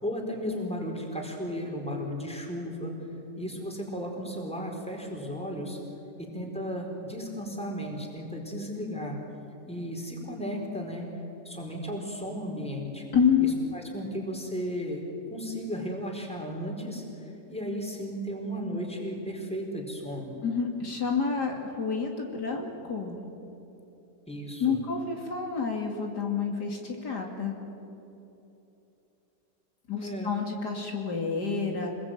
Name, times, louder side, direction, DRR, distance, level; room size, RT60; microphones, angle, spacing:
voice 1, 0.0-2.9 3.4-5.8 6.2-9.2 9.7-11.1 11.4-13.0 13.4-15.1 15.3-17.0 17.5-20.4 24.3-24.8 30.0-30.3, equal, 5° left, 0 dB, 4.5 m, -35 dB
voice 2, 13.1-13.6 20.4-23.2 24.6-27.6 29.9-31.9, left 6 dB, 65° left, 1 dB, 3.2 m, -28 dB
27.0 x 21.0 x 9.2 m, 2.9 s
omnidirectional pair, 1.9 m